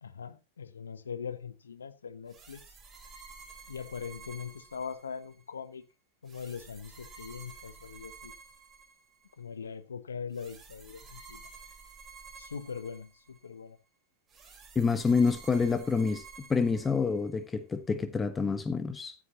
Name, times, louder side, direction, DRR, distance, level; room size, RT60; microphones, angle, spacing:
voice 1, 0.0-2.6 3.7-5.8 6.2-8.3 9.4-11.5 12.3-13.8, left 6 dB, 80° left, 1.0 m, -41 dB
sound 1, 2.3-5.4 6.3-9.4 10.3-13.5 14.3-17.4, right 5 dB, 20° right, 4.2 m, -51 dB
voice 2, 14.7-16.2 16.5-19.1, left 5 dB, 15° left, 1.1 m, -27 dB
14.5 x 8.2 x 2.9 m
figure-of-eight pair, 95°, 0 cm